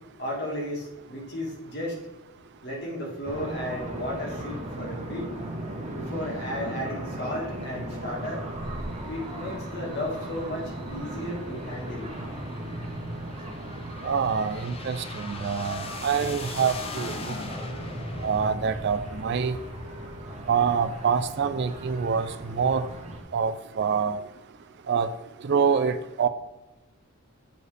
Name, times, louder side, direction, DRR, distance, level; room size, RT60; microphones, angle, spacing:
voice 1, 0.2-2.0 2.6-5.3 5.9-8.5 9.1-12.2, left 1 dB, 50° left, -1 dB, 1.8 m, -34 dB
sound 1, 3.2-23.2, right 1 dB, 30° right, 1.0 m, -37 dB
sound 2, 8.6-20.3, left 3 dB, 25° left, 0.4 m, -42 dB
voice 2, 14.0-17.2 18.2-19.6 20.5-22.9 23.3-24.2 24.9-25.1 25.4-26.3, right 6 dB, 50° right, 11 dB, 0.3 m, -26 dB
8.0 x 4.6 x 3.3 m, 0.99 s
head